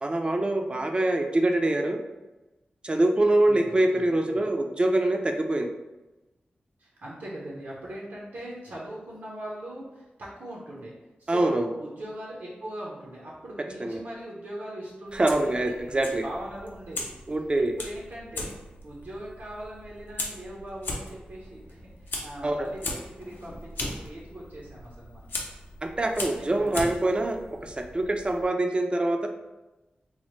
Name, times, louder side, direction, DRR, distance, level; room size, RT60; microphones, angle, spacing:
voice 1, 0.0-2.0 2.8-5.7 11.3-11.7 13.8-14.0 15.1-16.2 17.3-17.7 22.4-22.7 25.8-29.3, right 1 dB, 30° right, 4 dB, 0.4 m, -24 dB
voice 2, 3.4-4.4 6.8-10.9 11.2-17.1 17.6-18.6 18.8-25.3 26.2-27.0, right 1 dB, 80° right, -6 dB, 0.7 m, -41 dB
Fire, 15.1-28.5, left 2 dB, 75° left, 0.5 m, -39 dB
3.1 x 2.0 x 3.0 m, 1.1 s
wide cardioid pair, 75°, 3 cm